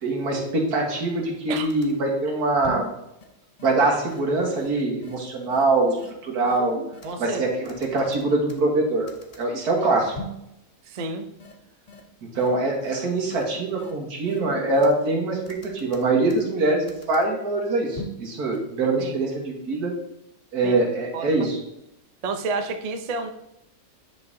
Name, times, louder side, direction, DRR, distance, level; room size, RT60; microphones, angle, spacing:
voice 1, 0.0-2.9 3.6-6.0 6.2-6.8 7.2-9.1 9.4-10.2 12.3-19.9 20.5-21.6, right 2 dB, 80° right, 0 dB, 1.9 m, -23 dB
sound 1, 1.6-1.9 2.6-2.9 3.2-3.3 3.6-3.7 4.1-4.2 4.5-4.7 5.0-5.1 5.5-5.6 6.0-6.1 6.4-7.1 7.6-8.8 9.1-9.4 10.1-10.4 11.0-11.1 11.4-11.5 11.9-12.0 12.3-12.5 12.8-12.9 13.3-13.4 13.8-13.9 14.3-14.9 15.5-16.6 16.9-17.2 17.9-18.2 18.5-18.6, left 2 dB, 35° left, 0.7 m, -38 dB
voice 2, 7.0-7.4 9.8-9.9 10.9-11.3 19.0-19.2 20.6-20.8 21.1-21.3 22.2-23.3, right 3 dB, 60° right, 6 dB, 0.4 m, -30 dB
9.6 x 5.3 x 2.7 m, 0.85 s
omnidirectional pair, 1.6 m